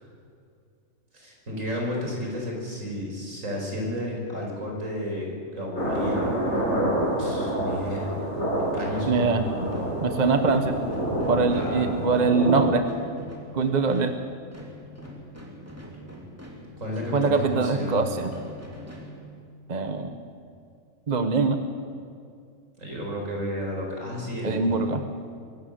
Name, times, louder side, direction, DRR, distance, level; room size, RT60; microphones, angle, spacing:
voice 1, 1.1-6.3 7.2-8.1 8.7-9.5 11.5-11.9 16.8-18.1 22.8-24.9, equal, 75° right, -1 dB, 5.2 m, -32 dB
sound 1, 5.8-12.6, right 1 dB, 60° left, 7.6 m, -28 dB
voice 2, 9.1-9.4 10.0-10.8 11.3-12.9 13.5-14.2 17.1-18.3 19.7-20.2 21.1-21.6 24.4-25.0, right 4 dB, 35° right, 8 dB, 1.1 m, -23 dB
sound 2, 9.6-19.8, equal, 10° right, 3.0 m, -44 dB
23.0 x 12.5 x 9.2 m, 2.3 s
omnidirectional pair, 1.4 m